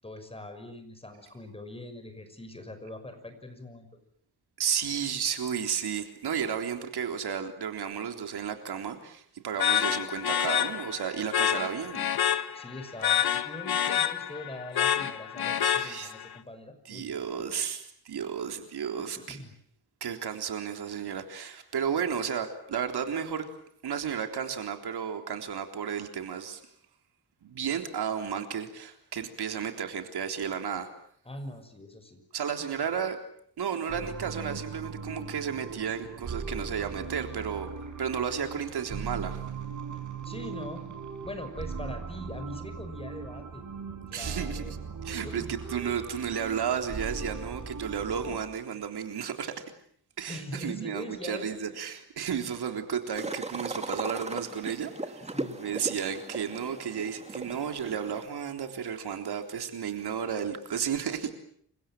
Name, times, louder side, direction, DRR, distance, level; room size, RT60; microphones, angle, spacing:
voice 1, 0.0-3.9 12.5-17.6 19.0-19.5 31.2-32.2 32.6-32.7 40.2-40.9 41.2-43.6 44.1-44.7 45.1-45.5 50.3-51.6 52.3-52.5 55.2-55.6, left 1 dB, 15° left, 8 dB, 6.1 m, -42 dB
voice 2, 4.6-12.1 15.6-16.1 16.9-19.4 20.0-23.5 23.8-26.6 27.4-30.9 32.3-33.2 33.6-37.7 38.0-39.4 44.1-44.8 45.0-49.6 50.2-55.3 55.6-61.3, right 7 dB, 70° right, 5 dB, 3.7 m, -33 dB
sound 1, 9.6-16.3, left 9 dB, 65° left, 1.8 m, -28 dB
sound 2, 33.9-48.4, right 5 dB, 45° right, 5.9 m, -39 dB
sound 3, 53.1-58.2, right 2 dB, 15° right, 2.3 m, -38 dB
29.5 x 25.0 x 7.7 m, 0.65 s
cardioid pair, 115°, 40 cm